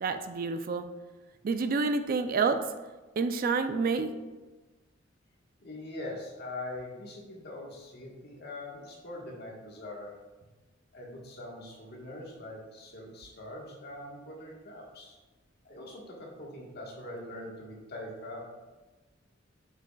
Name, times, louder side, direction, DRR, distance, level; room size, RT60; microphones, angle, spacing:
voice 1, 0.0-0.8 1.4-2.6 3.2-4.1, right 4 dB, 45° right, 8 dB, 0.4 m, -28 dB
voice 2, 5.6-10.2 10.9-15.2 15.6-18.4, left 1 dB, 55° left, -1 dB, 1.4 m, -42 dB
7.4 x 5.7 x 2.3 m, 1.2 s
head